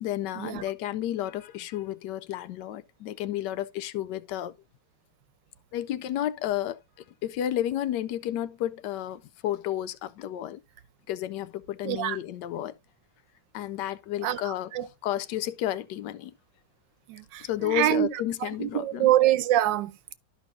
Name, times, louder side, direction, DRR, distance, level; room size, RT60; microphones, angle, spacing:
voice 1, 0.0-4.5 5.7-6.8 7.2-10.6 11.1-12.7 13.5-14.7 15.0-16.3 17.4-19.1, left 12 dB, 75° left, 1.1 m, -31 dB
voice 2, 11.8-12.2 14.2-14.9 17.1-20.1, right 13 dB, 90° right, 1.3 m, -26 dB
12.5 x 5.2 x 2.6 m
omnidirectional pair, 1.9 m